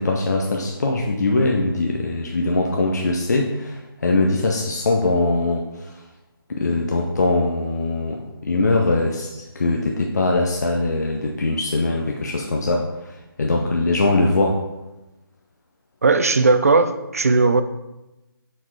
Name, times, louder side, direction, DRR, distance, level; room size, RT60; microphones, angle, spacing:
voice 1, 0.0-5.6 6.5-14.6, left 2 dB, 45° left, 0 dB, 0.6 m, -21 dB
voice 2, 16.0-17.6, right 3 dB, 40° right, 10 dB, 0.4 m, -17 dB
6.5 x 4.1 x 4.6 m, 1.0 s
figure-of-eight pair, 170°, 13 cm